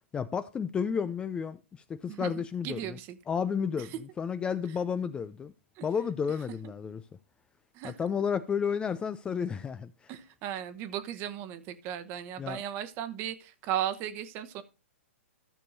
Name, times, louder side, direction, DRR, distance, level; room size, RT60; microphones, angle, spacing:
voice 1, 0.1-3.0 3.3-5.5 5.8-7.0 7.8-10.1 12.4-12.6, left 6 dB, 15° left, 0.4 m, -32 dB
voice 2, 2.1-3.2 3.8-3.9 5.8-5.9 7.7-8.0 10.1-14.6, right 11 dB, 30° right, 1.0 m, -36 dB
14.5 x 6.8 x 2.6 m
figure-of-eight pair, 115°, 7 cm